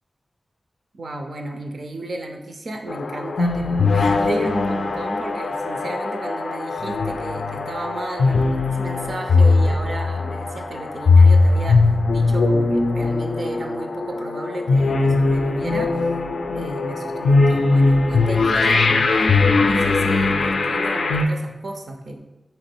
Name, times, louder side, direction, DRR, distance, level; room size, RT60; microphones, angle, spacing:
voice 1, 0.9-16.1 16.5-22.2, right 2 dB, 70° right, 3 dB, 0.5 m, -33 dB
sound 1, 2.9-21.3, left 3 dB, 85° left, 0.3 m, -19 dB
3.2 x 2.9 x 4.3 m, 1.0 s
wide cardioid pair, 85°, 0 cm